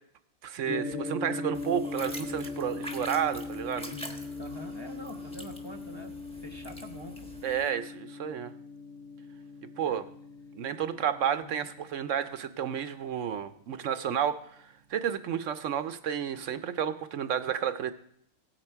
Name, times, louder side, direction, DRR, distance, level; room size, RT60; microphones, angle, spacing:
voice 1, 0.4-3.9 7.4-8.5 9.8-10.0 10.6-17.9, right 9 dB, 70° right, 11 dB, 1.0 m, -31 dB
Gong, 0.6-14.8, left 3 dB, 65° left, 2.7 m, -40 dB
sound 1, 1.5-7.7, right 1 dB, 5° left, 1.1 m, -45 dB
voice 2, 4.4-7.3 9.9-10.0, equal, 25° left, 2 dB, 0.7 m, -45 dB
16.5 x 9.0 x 4.5 m, 0.70 s
omnidirectional pair, 1.4 m